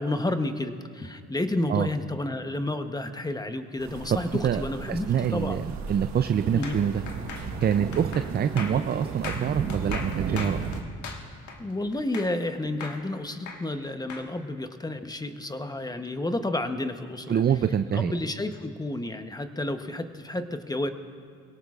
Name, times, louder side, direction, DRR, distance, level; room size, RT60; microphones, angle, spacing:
voice 1, 0.0-5.6 6.5-6.8 11.6-17.4 17.9-20.9, left 1 dB, 15° left, 8 dB, 0.9 m, -31 dB
sound 1, 3.8-10.8, right 5 dB, 65° right, 1.3 m, -34 dB
voice 2, 4.9-7.0 7.6-10.6 17.3-18.1, right 8 dB, 35° right, 10 dB, 0.4 m, -25 dB
sound 2, 6.6-12.5 12.8-14.3, left 5 dB, 75° left, 1.6 m, -39 dB
22.5 x 17.5 x 2.4 m, 2.2 s
cardioid pair, 90°, 30 cm